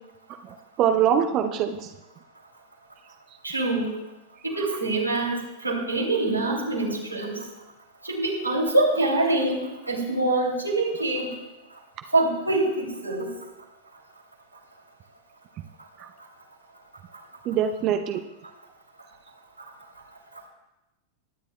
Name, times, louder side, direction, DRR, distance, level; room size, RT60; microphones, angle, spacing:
voice 1, 0.8-1.9 17.5-18.2, right 9 dB, 35° right, 6 dB, 0.6 m, -23 dB
voice 2, 3.4-3.9 4.4-7.4 8.0-11.3 12.1-13.3, right 2 dB, 85° right, -2 dB, 2.7 m, -25 dB
22.0 x 10.0 x 2.3 m, 1.0 s
figure-of-eight pair, 90°, 0 cm